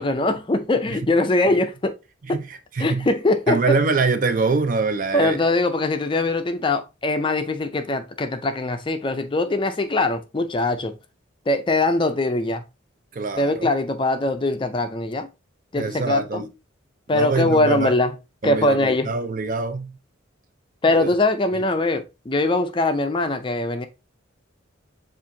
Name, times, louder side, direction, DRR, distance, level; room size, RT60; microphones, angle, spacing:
voice 1, 0.0-1.9 2.3-2.4 2.8-3.6 5.1-11.0 11.5-12.6 13.4-15.3 15.7-16.4 17.1-18.1 18.4-19.1 20.8-23.9, left 2 dB, 25° left, 0.4 m, -22 dB
voice 2, 2.3-3.1 3.5-5.4 13.1-13.7 15.7-16.5 17.1-17.9 18.4-19.9 20.9-21.1 21.5-21.6, right 4 dB, 40° right, 0.5 m, -24 dB
7.3 x 2.5 x 2.6 m
head